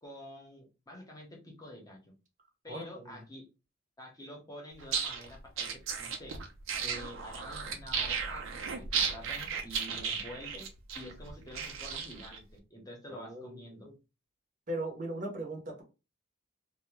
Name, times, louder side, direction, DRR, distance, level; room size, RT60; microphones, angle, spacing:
voice 1, 0.0-2.0 2.6-3.4 4.0-6.4 6.8-10.7 10.9-13.9, equal, 20° left, -1 dB, 0.8 m, -48 dB
voice 2, 2.7-3.2 10.0-10.1 13.1-14.0 14.7-15.8, right 1 dB, 40° right, 2 dB, 0.7 m, -39 dB
sound 1, 4.8-12.4, right 6 dB, 80° right, 0.6 m, -35 dB
2.6 x 2.1 x 3.1 m, 0.30 s
head